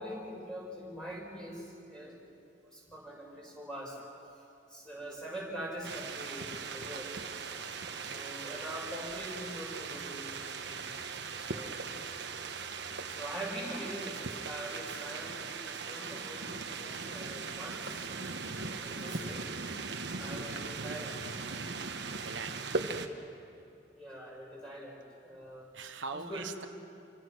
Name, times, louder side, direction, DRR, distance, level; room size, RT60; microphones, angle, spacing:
voice 1, 0.0-2.3 2.7-4.0 4.7-7.2 8.0-10.3 10.6-11.0 11.5-11.8 12.1-12.2 13.1-18.1 18.8-19.5 20.2-21.5 23.9-25.7 26.1-26.5, right 1 dB, 5° left, -4 dB, 6.5 m, -43 dB
sound 1, 5.8-23.1, right 4 dB, 60° right, 1.3 m, -39 dB
voice 2, 18.4-18.7 22.2-22.6 25.7-26.7, right 4 dB, 75° right, 7 dB, 1.1 m, -43 dB
28.5 x 25.0 x 6.3 m, 2.5 s
head